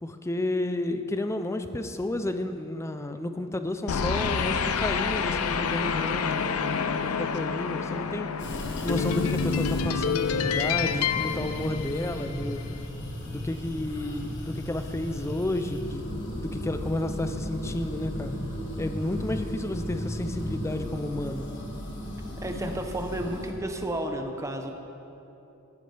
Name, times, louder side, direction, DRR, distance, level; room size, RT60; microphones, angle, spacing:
voice 1, 0.0-8.3 8.8-12.6 13.3-18.3 18.8-21.5, left 1 dB, 15° left, 8 dB, 0.5 m, -31 dB
sound 1, 3.9-12.4, left 6 dB, 85° left, 0.5 m, -28 dB
sound 2, 8.4-23.5, equal, 55° left, 1.5 m, -35 dB
voice 2, 22.4-24.7, right 1 dB, 15° right, 4 dB, 0.7 m, -32 dB
15.5 x 9.6 x 3.4 m, 2.9 s
head